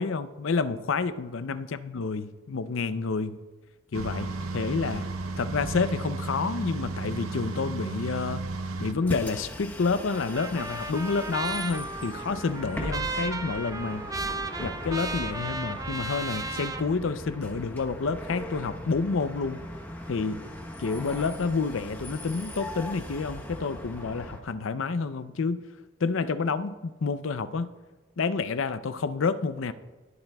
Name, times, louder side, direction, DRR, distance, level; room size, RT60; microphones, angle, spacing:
voice 1, 0.0-3.4 3.9-5.1 5.4-8.5 8.8-14.1 14.6-19.7 20.1-20.4 20.8-25.6 26.0-27.7 28.2-29.7, left 4 dB, 65° left, 12 dB, 0.5 m, -29 dB
sound 1, 3.9-8.9, right 3 dB, 85° right, 0.7 m, -33 dB
Bus, 9.0-24.4, equal, 10° left, 0.9 m, -39 dB
Trumpet, 10.1-16.8, right 3 dB, 15° right, 0.5 m, -35 dB
20.5 x 8.9 x 2.3 m, 1.3 s
head